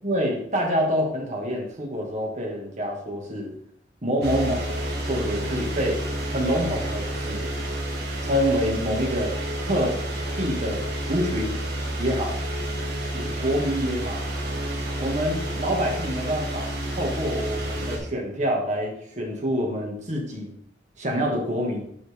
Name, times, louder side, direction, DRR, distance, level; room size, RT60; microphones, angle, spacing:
voice 1, 0.0-3.5 4.0-4.6 5.1-6.0 6.3-7.5 8.2-9.3 9.7-9.9 10.4-11.6 12.0-12.4 13.1-14.2 15.0-20.5 21.0-21.8, equal, 45° right, -1 dB, 2.1 m, -26 dB
sound 1, 4.2-18.0, right 1 dB, 65° right, 2.2 m, -30 dB
11.0 x 4.9 x 3.7 m, 0.68 s
head